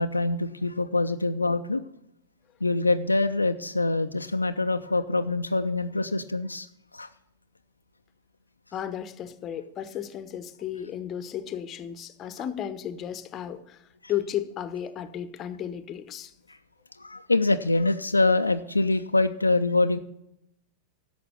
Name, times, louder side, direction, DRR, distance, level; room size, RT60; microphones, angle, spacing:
voice 1, 0.0-1.8 2.6-6.7 6.9-7.1 17.0-20.0, left 2 dB, 80° left, 8 dB, 0.4 m, -24 dB
voice 2, 8.7-13.8 14.1-16.3, left 10 dB, 30° left, 13 dB, 0.8 m, -34 dB
11.0 x 6.9 x 6.8 m, 0.79 s
figure-of-eight pair, 90°, 0 cm